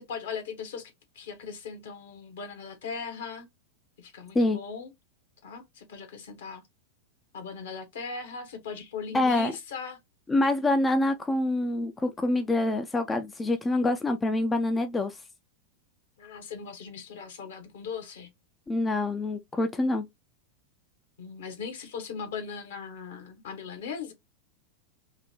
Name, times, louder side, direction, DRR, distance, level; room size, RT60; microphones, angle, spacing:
voice 1, 0.0-3.5 4.0-4.9 5.4-6.6 7.3-10.0 16.2-18.3 21.2-24.1, left 5 dB, 60° left, 1.3 m, -39 dB
voice 2, 9.1-9.5 10.3-15.2 18.7-20.1, left 2 dB, 15° left, 0.4 m, -26 dB
3.7 x 2.8 x 3.0 m
figure-of-eight pair, 90°, 0 cm